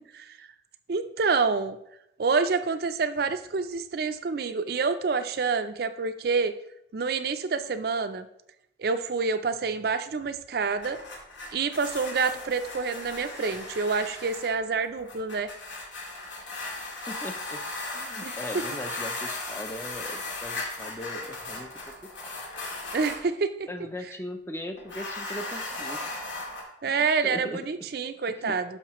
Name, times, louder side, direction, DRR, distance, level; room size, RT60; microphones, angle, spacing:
voice 1, 0.9-1.8 2.2-6.5 6.9-8.3 8.8-11.0 11.5-15.5 18.2-18.3 22.9-23.7 26.8-28.6, right 4 dB, 55° right, 10 dB, 0.4 m, -27 dB
sound 1, 10.5-23.2 24.8-26.6, left 2 dB, 75° left, 1.9 m, -37 dB
voice 2, 17.1-17.6 17.9-22.4 23.7-26.1 26.9-27.7 28.3-28.6, left 1 dB, 15° left, 7 dB, 0.4 m, -39 dB
11.0 x 6.4 x 3.0 m, 0.79 s
head